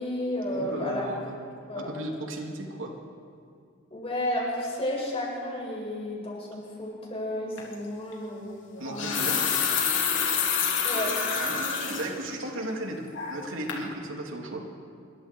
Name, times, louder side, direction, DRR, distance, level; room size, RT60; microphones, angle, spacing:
voice 1, 0.0-1.1 1.7-1.9 3.9-9.3 10.8-11.1, left 1 dB, 30° left, -3 dB, 6.3 m, -32 dB
voice 2, 0.5-1.4 1.8-2.9 8.8-9.4 10.7-10.9 11.3-14.6, right 1 dB, 90° right, 1 dB, 3.1 m, -35 dB
water tap, 7.6-7.7 8.7-12.1 12.5-12.6 13.1-13.4 13.7-13.8, left 6 dB, 70° left, 3.2 m, -27 dB
26.5 x 22.5 x 4.7 m, 2.2 s
head